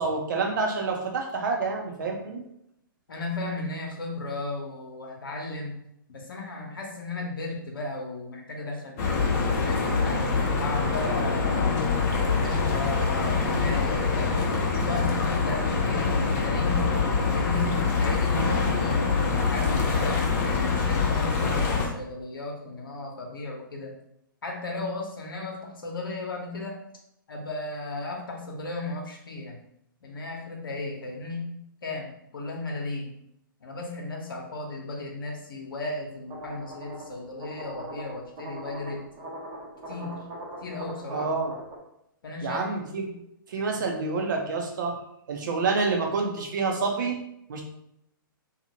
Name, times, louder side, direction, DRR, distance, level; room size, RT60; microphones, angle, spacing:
voice 1, 0.0-2.4 41.1-41.5 42.4-43.1 43.5-45.0 45.3-47.2 47.5-47.6, right 4 dB, 60° right, 1 dB, 0.7 m, -28 dB
voice 2, 3.1-5.8 6.1-10.2 10.6-11.7 12.4-14.5 14.8-16.9 17.3-19.1 19.4-23.9 24.4-26.8 27.3-29.6 30.0-31.5 31.8-33.1 33.6-39.0 39.9-40.2 40.6-41.3 42.2-43.1 43.7-43.9, left 2 dB, 75° left, 0 dB, 0.9 m, -35 dB
sound 1, 9.0-21.9, left 4 dB, 40° left, 0.7 m, -25 dB
sound 2, 36.3-41.8, right 1 dB, 30° right, 0.8 m, -41 dB
2.8 x 2.4 x 2.8 m, 0.79 s
figure-of-eight pair, 125°, 12 cm